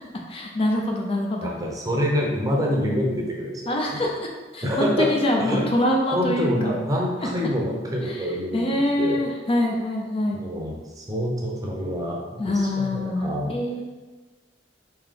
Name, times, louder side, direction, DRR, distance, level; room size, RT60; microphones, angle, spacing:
voice 1, 0.3-1.5 3.7-4.2 4.5-6.7 8.1-10.4 12.4-13.8, left 1 dB, 30° left, 0 dB, 0.4 m, -25 dB
voice 2, 1.4-4.0 4.6-5.1 5.4-5.6 6.0-8.7 9.0-9.3 10.3-13.5, equal, 20° right, -2 dB, 0.6 m, -26 dB
3.4 x 2.8 x 3.7 m, 1.2 s
head